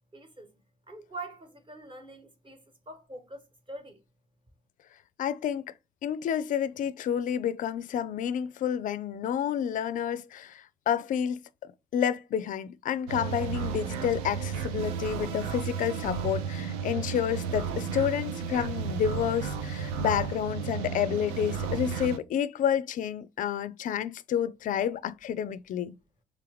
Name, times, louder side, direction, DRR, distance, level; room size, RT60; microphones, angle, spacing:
voice 1, 0.1-0.5 0.9-3.4 3.7-4.0, right 2 dB, 25° right, 1.2 m, -44 dB
voice 2, 5.2-5.6 6.0-25.9, left 9 dB, 40° left, 0.4 m, -30 dB
sound 1, 13.1-22.2, right 6 dB, 70° right, 0.6 m, -33 dB
3.4 x 3.3 x 3.5 m
figure-of-eight pair, 50°, 20 cm